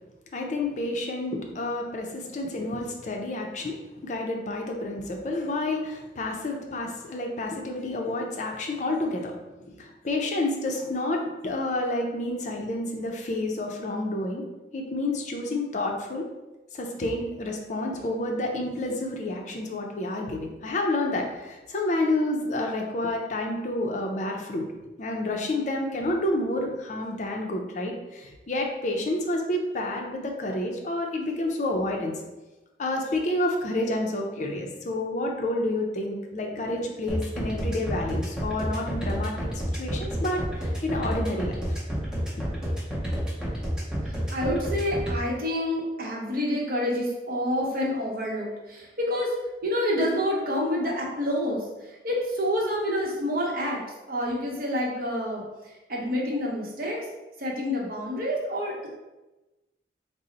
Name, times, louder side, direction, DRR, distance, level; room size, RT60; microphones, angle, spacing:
voice 1, 0.3-9.3 9.6-14.4 14.7-16.3 16.7-24.7 25.0-32.1 32.8-39.3 39.7-41.8 42.2-42.3, left 1 dB, 45° left, 1 dB, 0.5 m, -29 dB
sound 1, 37.1-45.1, equal, 5° right, 0.7 m, -30 dB
voice 2, 44.0-49.3 49.6-53.8 54.1-57.1 57.4-58.9, equal, 55° right, -2 dB, 0.8 m, -28 dB
3.9 x 2.0 x 3.8 m, 1.1 s
head